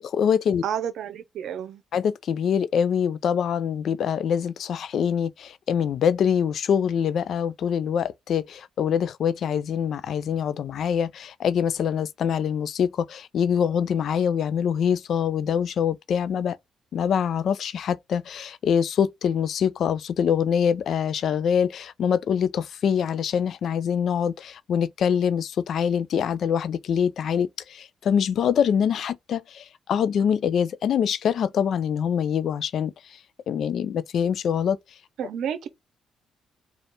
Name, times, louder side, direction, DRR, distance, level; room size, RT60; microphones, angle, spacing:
voice 1, 0.0-0.6 1.9-16.6 16.9-33.2 33.5-34.8, left 8 dB, 65° left, 0.4 m, -24 dB
voice 2, 0.6-1.8 35.2-35.7, right 9 dB, 75° right, 0.7 m, -30 dB
3.5 x 2.4 x 3.9 m
cardioid pair, 90°, 0 cm